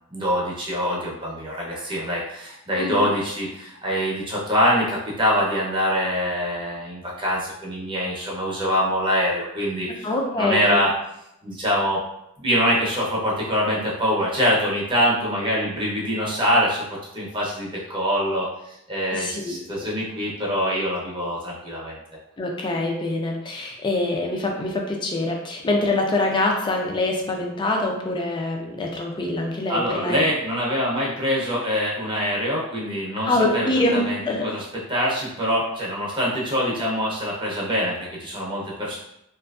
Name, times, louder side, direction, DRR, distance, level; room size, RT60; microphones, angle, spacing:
voice 1, 0.1-10.1 10.3-10.9 11.4-12.0 12.4-22.0 29.7-34.6 34.9-39.0, equal, 20° right, -5 dB, 0.6 m, -24 dB
voice 2, 2.8-3.1 9.9-10.9 19.1-19.9 22.4-30.2 33.2-34.5, left 2 dB, 20° left, 1 dB, 0.3 m, -25 dB
2.6 x 2.4 x 2.3 m, 0.82 s
head